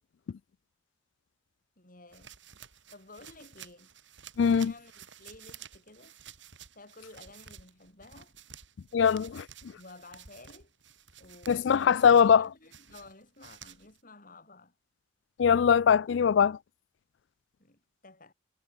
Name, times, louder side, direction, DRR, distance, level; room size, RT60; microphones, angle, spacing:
voice 1, 1.8-2.3 2.9-3.9 4.4-6.2 6.7-8.3 9.7-10.7 11.2-12.0 12.4-14.8 17.6-18.3, left 2 dB, 45° left, 4.1 m, -53 dB
sound 1, 2.1-14.0, right 8 dB, 70° right, 7.5 m, -52 dB
voice 2, 4.4-4.7 8.9-9.5 11.5-12.4 15.4-16.6, left 7 dB, 65° left, 0.4 m, -21 dB
head